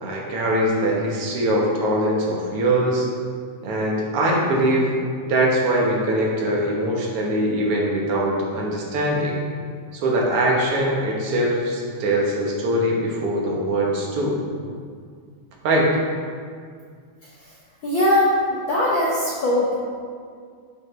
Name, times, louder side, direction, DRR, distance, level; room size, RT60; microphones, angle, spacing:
voice 1, 0.0-3.1 3.6-4.9 5.3-9.3 9.9-14.4 15.6-15.9, right 1 dB, 55° right, -3 dB, 2.0 m, -22 dB
voice 2, 17.8-19.7, left 1 dB, 70° left, -6 dB, 1.2 m, -20 dB
10.5 x 5.8 x 3.3 m, 2.1 s
omnidirectional pair, 3.5 m